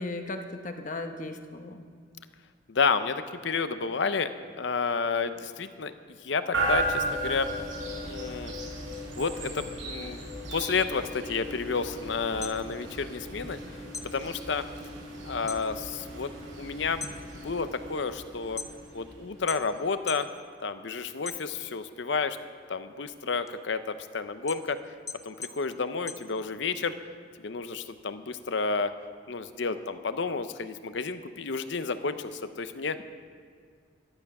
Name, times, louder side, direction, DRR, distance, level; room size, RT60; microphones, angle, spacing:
voice 1, 0.0-1.8, left 2 dB, 40° left, 6 dB, 1.0 m, -36 dB
voice 2, 2.7-5.9 6.2-7.5 8.0-8.5 9.2-10.2 10.5-13.6 14.0-14.7 15.2-18.6 18.9-20.3 20.6-22.4 22.7-24.8 25.2-27.0 27.4-28.9 29.3-33.0, left 4 dB, 65° left, 11 dB, 0.7 m, -31 dB
sound 1, 6.5-19.5, right 1 dB, 85° right, 4.7 m, -36 dB
sound 2, 12.4-13.6 13.9-15.7 16.0-16.5 16.9-19.0 19.5-20.3 20.7-21.9 22.3-26.9, left 4 dB, 15° left, 0.5 m, -41 dB
12.5 x 12.0 x 6.0 m, 2.1 s
head